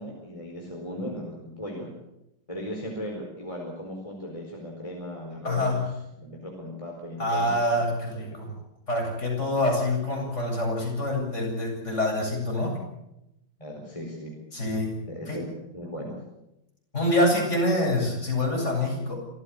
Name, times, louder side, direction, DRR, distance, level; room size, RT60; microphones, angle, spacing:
voice 1, 0.0-1.9 2.5-5.8 6.2-7.9 8.1-8.2 13.6-14.4 15.1-16.2, equal, 15° left, 0 dB, 4.6 m, -37 dB
voice 2, 5.4-5.9 7.2-8.5 8.9-12.8 14.5-14.9 15.3-15.4 16.9-19.1, left 1 dB, 35° left, 0 dB, 8.3 m, -26 dB
27.0 x 15.0 x 8.4 m, 0.87 s
omnidirectional pair, 2.1 m